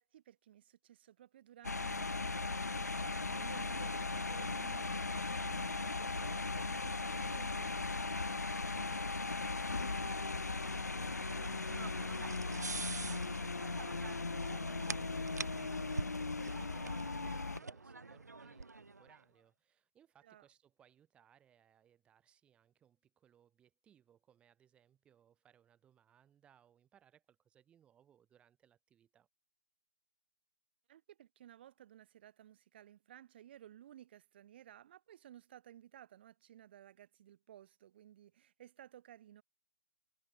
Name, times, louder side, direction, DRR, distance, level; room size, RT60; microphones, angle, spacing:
voice 1, 0.1-13.5 20.2-20.4 30.9-39.4, right 11 dB, 40° right, 2.7 m, -57 dB
sound 1, 1.6-17.6, left 3 dB, 80° left, 1.2 m, -38 dB
sound 2, 10.6-19.2, right 3 dB, 85° right, 0.5 m, -46 dB
voice 2, 14.0-29.3, right 9 dB, 10° right, 7.2 m, -68 dB
figure-of-eight pair, 135°, 9 cm